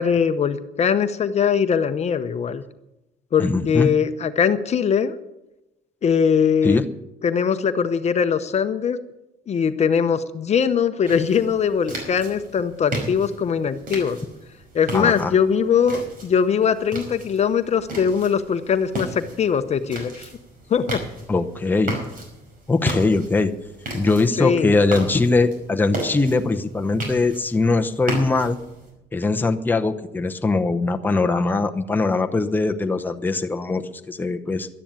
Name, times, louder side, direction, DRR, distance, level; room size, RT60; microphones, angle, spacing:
voice 1, 0.0-2.6 3.3-5.2 6.0-6.8 7.2-9.0 9.5-14.2 14.7-20.3 20.7-21.0 24.4-24.7, left 7 dB, 40° left, 10 dB, 0.8 m, -21 dB
voice 2, 3.4-3.9 6.6-6.8 14.9-15.3 21.3-22.0 22.7-23.5 23.9-28.6 29.1-34.7, left 3 dB, 10° left, 5 dB, 0.8 m, -21 dB
sound 1, 11.1-28.9, right 2 dB, 55° right, 5.2 m, -35 dB
12.0 x 9.9 x 8.9 m, 0.94 s
cardioid pair, 110°, 17 cm